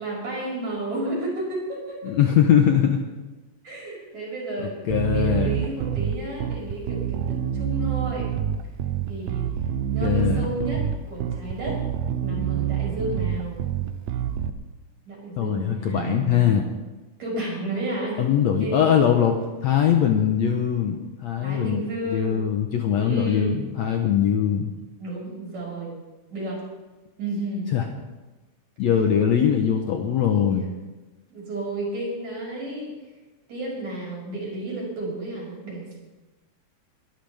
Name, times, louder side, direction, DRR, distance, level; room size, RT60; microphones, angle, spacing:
voice 1, 0.0-2.2 3.6-4.8 5.1-8.3 9.1-9.5 9.9-11.8 12.2-13.6 15.1-16.7 17.2-18.3 18.6-19.0 21.4-22.6 22.9-23.6 25.0-26.0 26.3-26.6 27.2-27.7 30.3-30.7 31.3-32.9 33.5-36.0, right 2 dB, 50° right, -4 dB, 7.0 m, -32 dB
voice 2, 2.0-3.0 4.6-5.8 10.0-10.5 15.4-16.6 18.2-24.7 27.7-27.9 28.8-30.6, left 9 dB, 70° left, 3 dB, 1.7 m, -22 dB
Bass guitar, 4.9-14.5, right 9 dB, 80° right, 1.7 m, -27 dB
22.5 x 13.0 x 3.5 m, 1.2 s
omnidirectional pair, 4.2 m